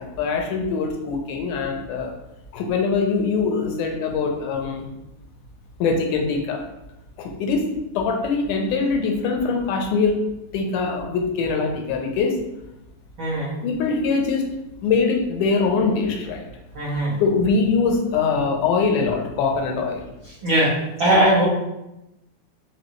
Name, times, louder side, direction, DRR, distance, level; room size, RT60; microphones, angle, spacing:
voice 1, 0.0-2.1 2.5-4.9 5.8-6.6 7.2-10.2 10.5-12.4 13.6-14.5 14.8-16.5 16.9-20.1, left 4 dB, 85° left, 2 dB, 2.1 m, -23 dB
voice 2, 13.2-13.5 16.7-17.2 20.4-20.7 21.0-21.4, right 1 dB, 65° right, -8 dB, 1.2 m, -19 dB
5.3 x 2.4 x 3.0 m, 0.91 s
omnidirectional pair, 3.5 m